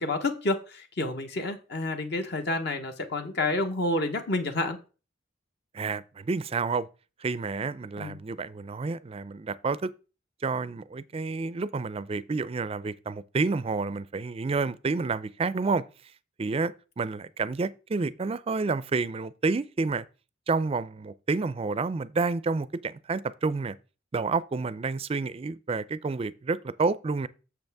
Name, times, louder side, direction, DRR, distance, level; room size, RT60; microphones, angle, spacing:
voice 1, 0.0-4.8 8.0-8.2, left 2 dB, 60° left, 1.0 m, -29 dB
voice 2, 5.7-6.9 7.2-9.9 10.4-15.8 16.4-20.0 20.5-23.8 24.1-27.3, right 4 dB, 30° right, 0.4 m, -29 dB
7.9 x 7.0 x 3.5 m
head